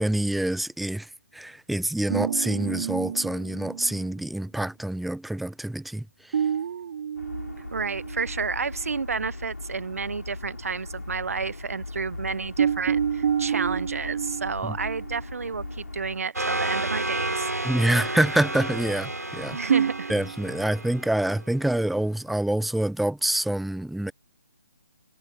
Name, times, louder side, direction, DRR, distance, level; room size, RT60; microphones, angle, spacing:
voice 1, 0.0-6.4 14.6-14.7 17.6-19.7 20.1-24.1, right 1 dB, ahead, 0.4 m, -26 dB
sound 1, 2.1-4.1 6.3-8.5 8.8-9.0 12.6-15.7 19.7-20.4, right 8 dB, 45° right, 1.7 m, -29 dB
sound 2, 7.2-16.2, left 2 dB, 80° left, 7.4 m, -39 dB
voice 2, 7.7-17.5 19.5-20.1, right 5 dB, 65° right, 1.3 m, -31 dB
sound 3, 16.4-21.8, right 2 dB, 85° right, 4.2 m, -31 dB
figure-of-eight pair, 140°, 9 cm